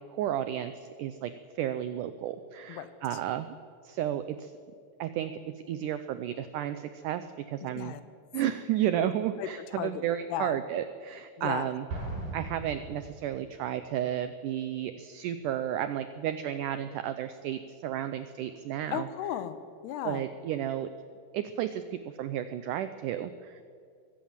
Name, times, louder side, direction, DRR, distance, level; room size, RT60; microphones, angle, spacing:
voice 1, 0.1-3.6 3.8-4.5 5.0-7.9 8.3-11.8 12.3-19.1 20.0-20.9 21.3-23.6, right 11 dB, 85° right, 11 dB, 1.8 m, -32 dB
voice 2, 2.7-3.2 7.6-8.0 9.0-9.1 9.4-10.6 11.4-11.7 18.9-20.2, left 11 dB, 85° left, 12 dB, 3.2 m, -36 dB
Explosion, 11.9-13.7, right 2 dB, 60° right, 6.7 m, -38 dB
22.5 x 16.0 x 7.4 m, 2.3 s
omnidirectional pair, 4.5 m